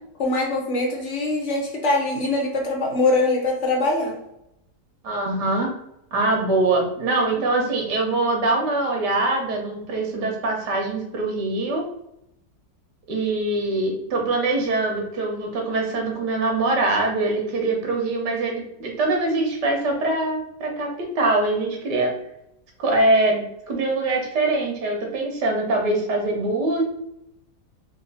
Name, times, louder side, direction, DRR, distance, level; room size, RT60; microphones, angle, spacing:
voice 1, 0.2-4.2, left 2 dB, 50° left, 0 dB, 1.2 m, -23 dB
voice 2, 5.0-5.7 6.1-11.8 13.1-20.9 21.1-22.1 22.8-26.8, right 2 dB, 80° right, 1 dB, 1.7 m, -23 dB
4.2 x 2.4 x 4.1 m, 0.83 s
omnidirectional pair, 1.8 m